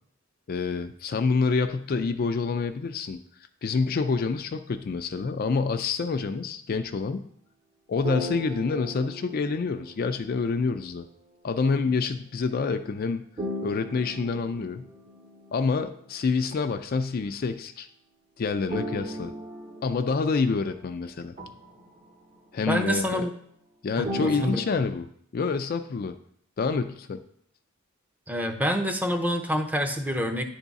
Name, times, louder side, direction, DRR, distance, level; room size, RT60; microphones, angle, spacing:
voice 1, 0.5-3.2 3.6-7.2 7.9-11.1 11.4-13.3 13.6-14.9 15.5-17.9 18.4-19.3 19.8-21.3 22.5-23.3 23.8-25.1 25.3-26.2 26.6-27.2, left 4 dB, 45° left, 8 dB, 0.4 m, -27 dB
sound 1, 8.0-10.4 13.4-15.6 18.7-22.3 24.0-24.7, equal, 35° right, 0.8 m, -37 dB
voice 2, 22.7-23.3 24.0-24.6 28.3-30.4, equal, 10° right, 4 dB, 0.6 m, -27 dB
9.8 x 3.6 x 4.0 m, 0.66 s
head